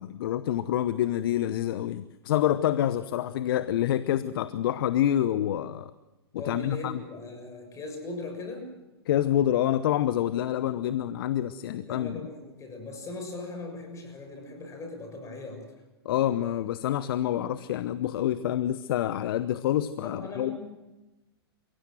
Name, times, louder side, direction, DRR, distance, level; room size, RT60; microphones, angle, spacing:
voice 1, 0.0-5.9 6.3-7.0 9.1-12.2 16.0-20.6, left 11 dB, 60° left, 13 dB, 1.0 m, -27 dB
voice 2, 6.4-8.8 11.6-15.7 20.0-20.6, left 2 dB, 20° left, 4 dB, 6.6 m, -39 dB
29.5 x 16.5 x 7.8 m, 1.0 s
hypercardioid pair, 115°, 14 cm